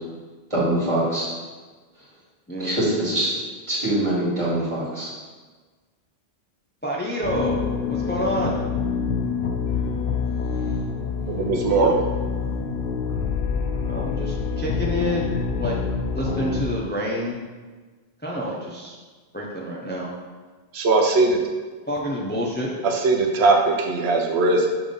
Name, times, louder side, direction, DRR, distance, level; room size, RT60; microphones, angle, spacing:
voice 1, 0.5-1.3 2.6-3.3 3.7-5.1, right 1 dB, 30° right, -7 dB, 2.1 m, -23 dB
voice 2, 6.8-7.6 7.9-8.6 13.9-15.3 15.6-15.8 16.1-17.5 18.2-18.9 19.3-20.1 21.9-22.7, equal, 10° left, -3 dB, 0.6 m, -28 dB
sound 1, 7.2-16.6, left 5 dB, 65° left, 0.7 m, -26 dB
voice 3, 11.3-12.0 20.7-21.4 22.8-24.7, right 3 dB, 90° right, 2 dB, 1.0 m, -19 dB
5.9 x 3.5 x 5.3 m, 1.4 s
omnidirectional pair, 1.1 m